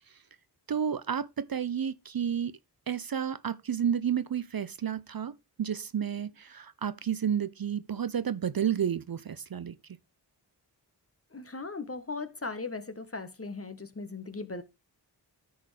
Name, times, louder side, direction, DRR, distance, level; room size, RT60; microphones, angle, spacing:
voice 1, 0.7-2.6 2.9-9.8, right 8 dB, 50° right, 0.6 m, -31 dB
voice 2, 11.3-14.6, left 3 dB, 30° left, 1.2 m, -38 dB
13.5 x 4.5 x 3.2 m
cardioid pair, 40°, 45 cm